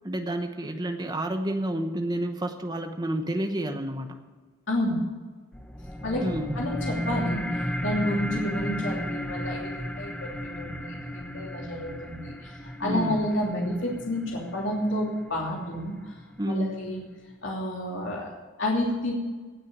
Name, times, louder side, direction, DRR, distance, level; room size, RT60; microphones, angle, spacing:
voice 1, 0.0-4.2 6.2-6.6 12.8-13.2 16.4-16.8, right 1 dB, 20° right, 6 dB, 0.9 m, -29 dB
voice 2, 4.7-5.0 6.0-6.3 6.5-16.1 16.5-17.0 17.4-19.1, left 1 dB, 65° left, -3 dB, 3.0 m, -30 dB
sound 1, 5.5-16.5, equal, 5° left, 0.6 m, -34 dB
18.0 x 6.5 x 7.2 m, 1.4 s
head